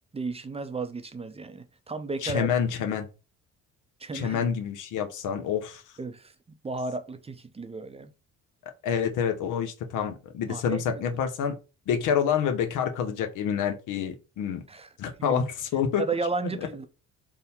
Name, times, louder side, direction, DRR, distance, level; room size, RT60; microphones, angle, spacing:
voice 1, 0.1-2.5 4.0-4.4 6.0-6.3 6.6-8.1 10.5-10.8 14.7-14.9 15.3-15.4 16.0-16.9, right 3 dB, 20° right, 0.5 m, -33 dB
voice 2, 2.2-3.1 4.1-5.8 8.8-11.6 11.9-14.6 15.0-16.0, left 8 dB, 85° left, 0.8 m, -27 dB
3.6 x 2.2 x 4.2 m
cardioid pair, 90°, 30 cm